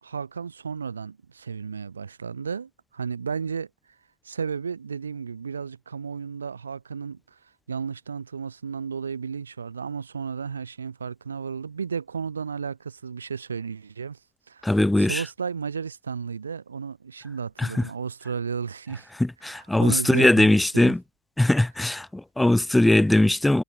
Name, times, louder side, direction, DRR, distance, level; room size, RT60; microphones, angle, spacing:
voice 1, 0.0-3.7 4.2-7.4 7.7-14.2 14.5-19.1 19.5-20.9, right 6 dB, 85° right, 1.9 m, -33 dB
voice 2, 14.6-15.2 17.6-17.8 19.2-21.0 21.4-23.6, left 1 dB, 5° left, 0.8 m, -20 dB
figure-of-eight pair, 85°, 0 cm